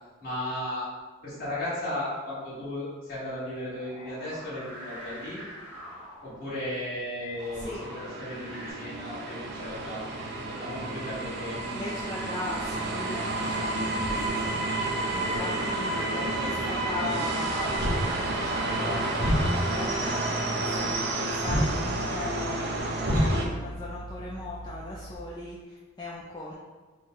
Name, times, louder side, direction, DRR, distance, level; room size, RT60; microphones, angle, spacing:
voice 1, 0.2-0.9 1.2-5.4 6.2-10.0 10.5-11.6 15.1-15.5, left 1 dB, 45° left, -12 dB, 1.4 m, -35 dB
sound 1, 3.7-8.7, equal, 5° right, 0.9 m, -46 dB
sound 2, 7.4-23.5, right 2 dB, 55° right, 0.4 m, -30 dB
voice 2, 7.5-7.8 11.7-14.6 15.2-26.5, left 2 dB, 20° left, -6 dB, 0.3 m, -38 dB
sound 3, 17.7-25.1, equal, 90° right, 1.2 m, -32 dB
3.7 x 2.0 x 3.9 m, 1.3 s
head